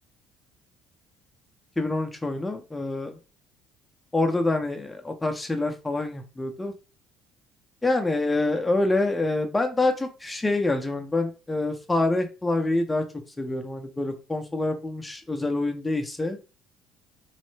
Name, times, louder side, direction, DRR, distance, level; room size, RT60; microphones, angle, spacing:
voice 1, 1.8-3.1 4.1-6.7 7.8-13.0 13.4-16.4, left 2 dB, 10° left, 5 dB, 0.5 m, -26 dB
3.1 x 2.0 x 3.1 m, 0.32 s
cardioid pair, 105°, 0 cm